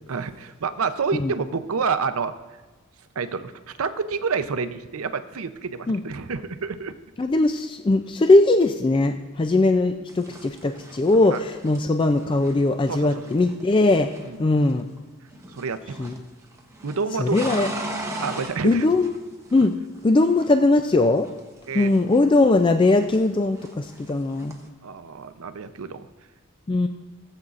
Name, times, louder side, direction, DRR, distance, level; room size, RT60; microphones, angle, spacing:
voice 1, 0.1-2.3 3.2-6.9 9.4-9.5 10.3-10.4 11.3-11.4 12.9-13.1 14.2-14.4 15.5-16.1 16.8-17.7 18.2-18.9 21.7-21.9 24.8-26.1, right 5 dB, 80° right, 11 dB, 0.6 m, -29 dB
voice 2, 7.2-14.1 14.4-14.9 16.0-16.1 17.2-17.7 18.6-19.1 19.5-19.7 20.0-21.3 21.7-24.6 26.7-26.9, left 2 dB, 25° left, 7 dB, 0.3 m, -20 dB
sound 1, 10.1-15.0 15.3-16.3 16.5-20.0 20.3-22.7 23.0-24.7, right 1 dB, 15° right, 1.0 m, -38 dB
17.5 x 8.0 x 2.5 m, 1.3 s
head